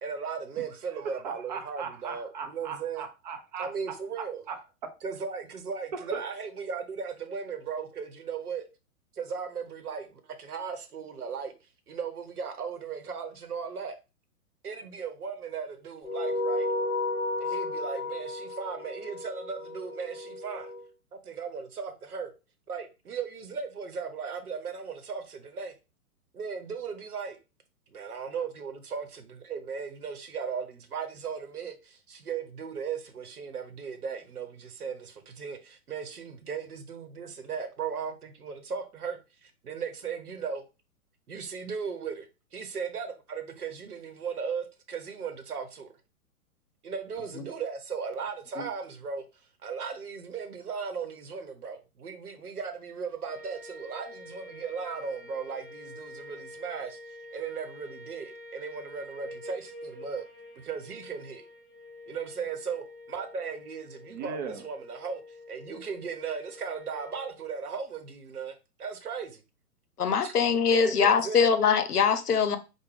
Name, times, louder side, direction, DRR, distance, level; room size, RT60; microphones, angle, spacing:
voice 1, 0.0-3.0 3.6-4.4 5.0-8.6 9.1-11.5 11.9-13.9 14.6-16.7 17.4-20.7 21.1-22.3 22.7-25.7 26.3-27.4 27.9-40.6 41.3-45.9 46.8-49.2 49.6-57.0 57.3-60.3 60.6-61.4 62.1-65.2 65.5-69.4 70.2-70.3 70.7-71.5, right 6 dB, 80° right, 0.9 m, -37 dB
voice 2, 1.0-5.0 5.9-6.2 64.1-64.7, right 6 dB, 30° right, 0.5 m, -38 dB
sound 1, 16.0-20.8, left 2 dB, 20° left, 2.0 m, -33 dB
sound 2, 53.3-67.3, left 1 dB, 15° right, 0.9 m, -47 dB
voice 3, 70.0-72.6, left 6 dB, 85° left, 0.6 m, -23 dB
4.9 x 2.2 x 3.1 m
figure-of-eight pair, 120°, 44 cm